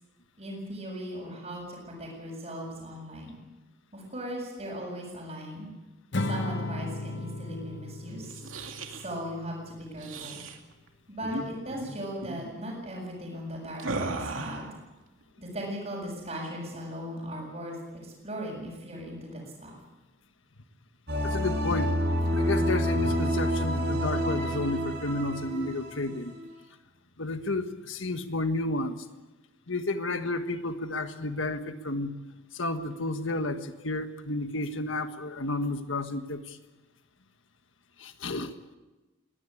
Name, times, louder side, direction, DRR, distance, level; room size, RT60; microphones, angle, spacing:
voice 1, 0.4-3.4 3.9-5.7 6.3-8.4 8.9-10.4 11.1-14.7 15.4-19.7, equal, 35° right, -7 dB, 6.7 m, -38 dB
Acoustic guitar / Strum, 6.1-9.5, left 2 dB, 60° left, 1.0 m, -35 dB
sound 1, 8.2-9.1 10.0-10.6 11.2-11.4 11.7-11.9 12.2-12.5 13.8-14.7, right 2 dB, 85° right, 2.5 m, -36 dB
sound 2, 21.1-26.5, equal, 55° right, 6.0 m, -28 dB
voice 2, 21.2-22.0 22.3-26.4 27.2-29.0 29.7-32.2 32.5-36.6 38.0-38.5, left 2 dB, 75° left, 8 dB, 1.5 m, -31 dB
21.5 x 17.0 x 8.7 m, 1.2 s
head